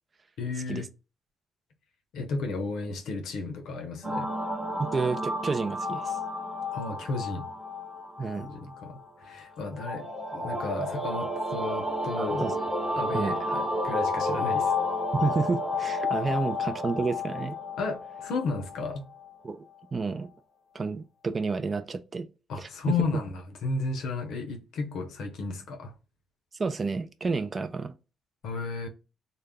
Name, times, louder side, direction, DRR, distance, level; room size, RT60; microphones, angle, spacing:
voice 1, 0.4-0.9 2.1-4.3 6.7-7.5 8.4-12.5 12.9-14.7 17.8-19.0 22.5-25.9 28.4-28.9, left 4 dB, 80° left, 0.6 m, -33 dB
sound 1, 4.0-19.3, left 2 dB, ahead, 1.0 m, -31 dB
voice 2, 4.8-6.2 8.2-8.5 12.2-12.6 13.1-13.4 15.1-17.6 19.4-19.6 19.9-20.3 20.7-22.3 22.6-22.7 26.6-27.9, right 4 dB, 35° right, 0.3 m, -30 dB
2.2 x 2.0 x 3.4 m
cardioid pair, 90°, 0 cm